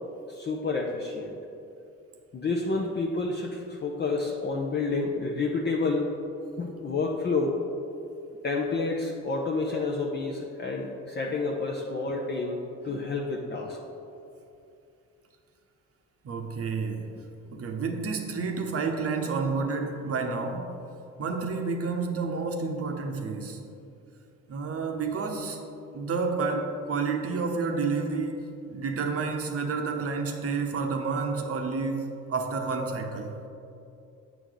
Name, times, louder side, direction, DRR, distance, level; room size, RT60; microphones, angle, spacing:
voice 1, 0.3-1.4 2.3-6.1 6.6-7.6 8.4-13.8, left 3 dB, 35° left, -2 dB, 0.7 m, -29 dB
voice 2, 16.2-20.8 21.2-23.6 24.5-25.6 25.9-33.4, right 4 dB, 50° right, 4 dB, 0.9 m, -30 dB
8.3 x 4.9 x 4.0 m, 2.7 s
cardioid pair, 90°, 30 cm